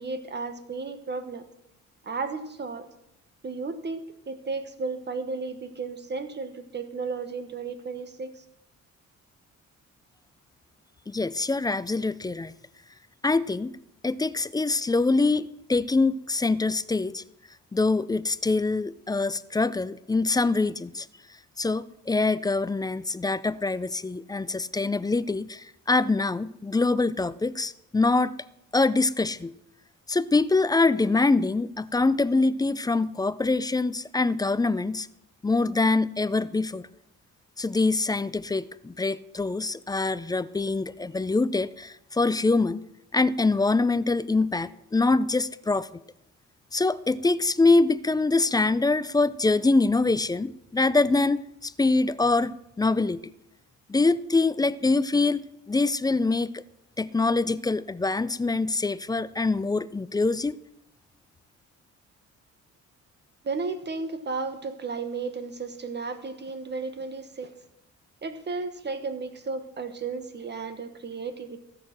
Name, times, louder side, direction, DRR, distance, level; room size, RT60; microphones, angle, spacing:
voice 1, 0.0-1.5 2.0-2.9 3.4-8.4 63.4-67.5 68.2-71.6, right 4 dB, 35° right, 9 dB, 1.2 m, -34 dB
voice 2, 11.1-12.5 13.2-13.7 14.0-17.2 17.7-21.1 21.6-28.3 28.7-29.6 30.1-35.1 35.4-36.8 37.6-42.8 43.1-45.9 46.7-53.3 53.9-56.6 57.0-60.6, left 3 dB, 15° left, 17 dB, 0.4 m, -24 dB
14.5 x 6.6 x 6.0 m, 0.81 s
cardioid pair, 90°, 30 cm